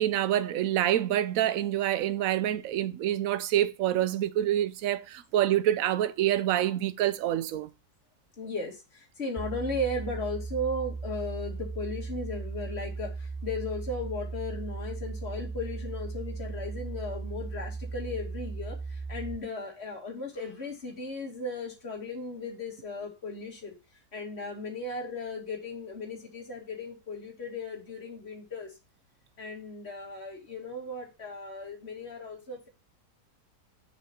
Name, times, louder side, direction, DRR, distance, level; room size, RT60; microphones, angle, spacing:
voice 1, 0.0-7.7, right 12 dB, 65° right, 0.9 m, -27 dB
voice 2, 8.4-23.8 24.1-28.7 29.4-32.7, left 2 dB, 40° left, 2.5 m, -36 dB
sound 1, 9.4-19.4, right 4 dB, 10° left, 0.4 m, -37 dB
6.7 x 5.9 x 4.3 m
omnidirectional pair, 1.8 m